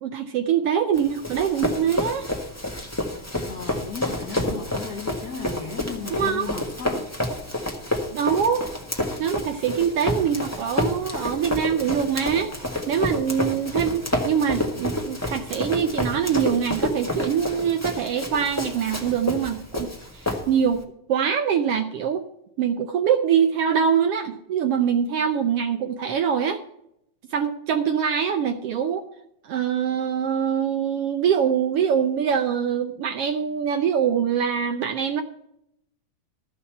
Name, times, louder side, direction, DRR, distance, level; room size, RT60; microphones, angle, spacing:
voice 1, 0.0-2.3 6.1-6.5 8.1-8.6 9.2-12.5 12.9-19.9 20.1-20.8 21.1-22.2 22.6-26.6 27.3-29.1 29.4-35.2, right 8 dB, 70° right, 6 dB, 1.4 m, -24 dB
Run, 0.9-20.8, left 1 dB, 10° left, 0.7 m, -29 dB
voice 2, 3.5-7.1, left 5 dB, 75° left, 2 dB, 0.8 m, -35 dB
13.5 x 5.8 x 7.8 m, 0.77 s
omnidirectional pair, 3.4 m